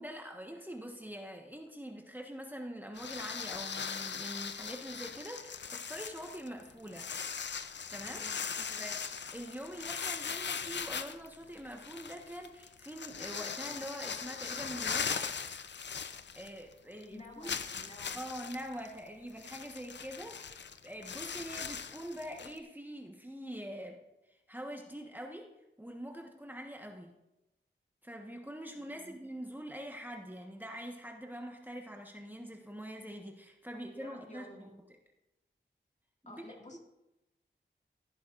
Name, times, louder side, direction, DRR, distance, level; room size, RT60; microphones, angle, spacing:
voice 1, 0.0-7.1 7.9-8.2 8.8-9.0 9.3-15.2 16.3-17.6 18.1-24.0 24.3-25.5 25.8-27.1 28.0-34.7 36.3-36.4 36.7-36.8, equal, 10° right, 1 dB, 1.2 m, -44 dB
sound 1, 2.9-16.7 17.0-17.1 17.4-22.6, left 6 dB, 65° left, 0.6 m, -40 dB
voice 2, 8.1-9.0 16.9-18.3 28.8-29.4 33.9-34.8 36.3-36.8, left 1 dB, 35° left, 1 dB, 2.1 m, -53 dB
15.5 x 8.6 x 2.5 m, 0.94 s
cardioid pair, 50°, 20 cm